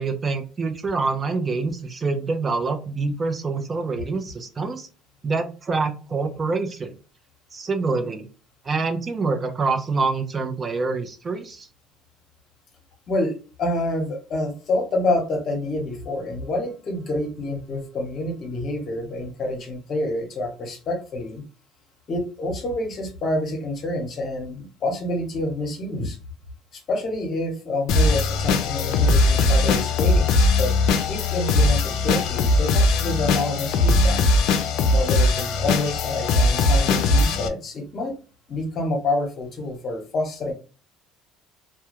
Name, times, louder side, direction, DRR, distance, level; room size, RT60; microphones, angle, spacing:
voice 1, 0.0-4.9 5.2-6.9 7.5-8.3 8.6-11.7, right 4 dB, 30° right, 6 dB, 0.5 m, -26 dB
voice 2, 13.1-21.4 22.1-26.2 26.7-30.7 31.1-34.3 34.9-38.2 38.5-40.5, left 2 dB, 45° left, 4 dB, 0.9 m, -27 dB
sound 1, 27.9-37.5, left 2 dB, 70° left, 0.4 m, -20 dB
2.2 x 2.2 x 2.9 m, 0.35 s
supercardioid pair, 95°, 0 cm